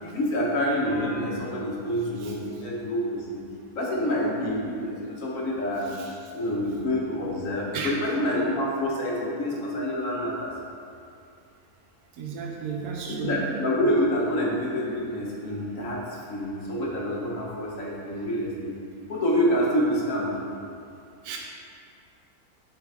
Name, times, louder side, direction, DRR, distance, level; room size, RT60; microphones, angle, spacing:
voice 1, 0.0-3.4 3.8-5.9 6.3-10.5 13.1-16.0 16.3-18.7 19.1-20.4, equal, 60° left, -4 dB, 1.4 m, -27 dB
voice 2, 12.2-13.3 21.2-21.4, right 6 dB, 85° right, 0 dB, 1.2 m, -33 dB
7.7 x 4.3 x 3.5 m, 2.5 s
omnidirectional pair, 1.6 m